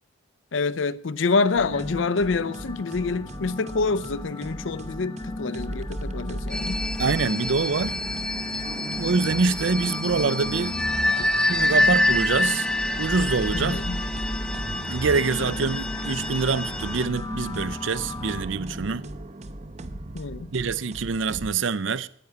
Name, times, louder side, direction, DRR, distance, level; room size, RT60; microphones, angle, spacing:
voice 1, 0.5-6.8 13.5-14.0 20.1-20.5, left 4 dB, 70° left, 0.6 m, -27 dB
sound 1, 1.2-18.4, left 2 dB, 20° left, 0.4 m, -37 dB
sound 2, 1.5-21.5, right 1 dB, 35° right, 0.7 m, -37 dB
sound 3, 6.5-17.0, left 1 dB, 5° left, 1.0 m, -27 dB
voice 2, 7.0-8.0 9.0-10.8 11.5-12.7 13.0-13.8 14.9-19.0 20.5-22.1, right 4 dB, 65° right, 0.5 m, -25 dB
10.0 x 9.3 x 8.5 m
head